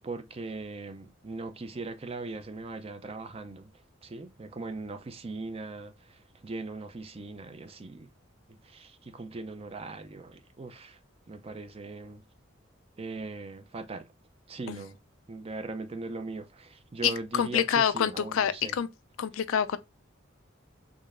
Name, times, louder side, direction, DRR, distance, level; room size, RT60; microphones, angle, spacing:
voice 1, 0.0-3.7 4.0-8.1 8.5-11.0 11.3-12.2 13.0-14.1 14.5-15.0 15.3-18.8, right 3 dB, 30° right, 0.5 m, -39 dB
voice 2, 17.0-18.9 19.2-19.8, left 8 dB, 80° left, 0.4 m, -27 dB
3.7 x 3.2 x 2.4 m
head